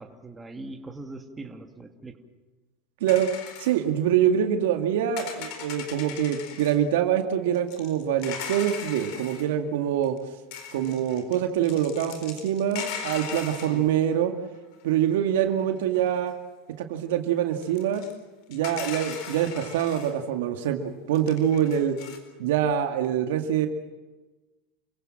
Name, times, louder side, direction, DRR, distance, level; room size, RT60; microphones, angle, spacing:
voice 1, 0.0-2.2 13.7-13.9, right 2 dB, 15° right, 4 dB, 2.6 m, -41 dB
sound 1, 3.1-3.8 5.2-6.8 7.5-9.5 10.0-10.2 10.5-14.0 14.9-15.0 15.4-15.5 15.9-16.3 17.6-18.1 18.5-20.1 21.1-22.2, left 8 dB, 60° left, 4.3 m, -39 dB
voice 2, 3.6-10.2 10.7-14.3 14.8-16.3 16.8-18.0 18.5-22.0 22.4-23.7, right 10 dB, 75° right, 5 dB, 2.1 m, -25 dB
29.0 x 16.5 x 7.6 m, 1.2 s
hypercardioid pair, 105°, 0 cm